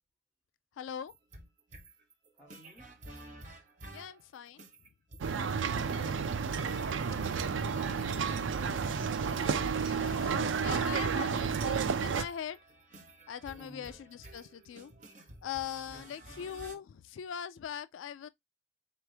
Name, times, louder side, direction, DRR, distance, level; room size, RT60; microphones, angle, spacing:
voice 1, 0.8-1.1 3.9-4.6 5.7-6.1 9.7-12.6 13.3-14.9 15.4-18.3, left 9 dB, 85° left, 0.3 m, -41 dB
sound 1, 1.1-16.8, right 2 dB, 40° right, 1.0 m, -51 dB
voice 2, 2.4-3.0 4.0-4.1 13.6-13.9 15.9-16.5, right 1 dB, 5° left, 2.1 m, -57 dB
sound 2, 5.2-12.2, right 6 dB, 80° right, 0.4 m, -31 dB
4.0 x 3.1 x 3.2 m
head